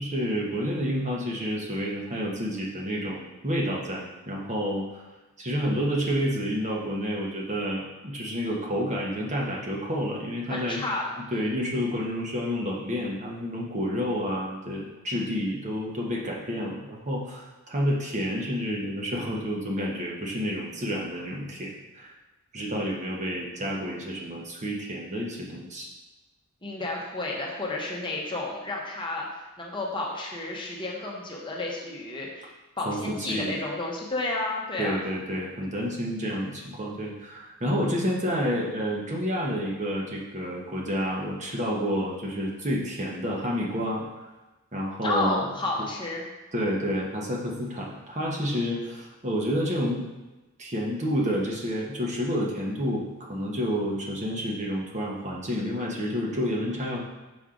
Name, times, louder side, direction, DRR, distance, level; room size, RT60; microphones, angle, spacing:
voice 1, 0.0-5.1 5.4-10.8 11.3-22.1 22.5-25.9 32.8-33.6 34.8-44.3 44.7-45.4 46.5-50.0 50.6-57.0, equal, 35° right, -2 dB, 1.0 m, -29 dB
voice 2, 10.5-11.4 26.6-32.5 32.8-35.0 45.0-46.2, left 2 dB, 25° left, -2 dB, 1.0 m, -31 dB
6.2 x 5.4 x 3.7 m, 1.1 s
head